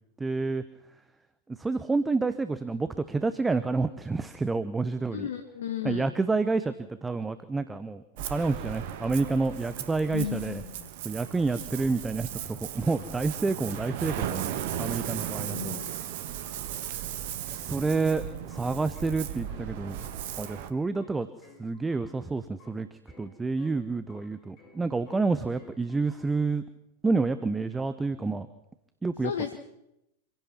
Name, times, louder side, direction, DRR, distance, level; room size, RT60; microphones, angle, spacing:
voice 1, 0.2-0.6 1.6-5.3 5.8-10.6 11.0-14.5 14.8-15.8 17.5-20.0 20.4-21.3 21.6-22.9 23.2-26.6 27.0-28.5 29.0-29.3, right 3 dB, 10° right, 12 dB, 1.0 m, -29 dB
voice 2, 5.1-6.1 10.1-10.9 15.5-16.0 29.2-29.6, left 8 dB, 65° left, 8 dB, 1.4 m, -34 dB
Ocean, 8.2-20.7, right 10 dB, 50° right, 1.5 m, -36 dB
sound 1, 11.1-26.5, left 3 dB, 35° left, 6.1 m, -57 dB
26.5 x 16.5 x 6.0 m, 0.86 s
figure-of-eight pair, 90°, 0 cm